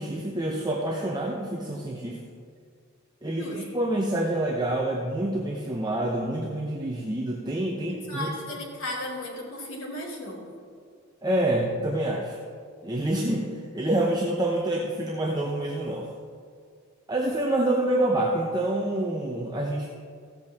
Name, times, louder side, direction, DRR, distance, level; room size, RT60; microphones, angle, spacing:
voice 1, 0.0-2.2 3.2-8.3 11.2-12.4 12.8-16.1 17.1-19.9, right 1 dB, 20° right, -1 dB, 0.8 m, -27 dB
voice 2, 8.1-10.4, left 1 dB, 80° left, -5 dB, 2.9 m, -35 dB
15.0 x 8.0 x 3.6 m, 2.2 s
head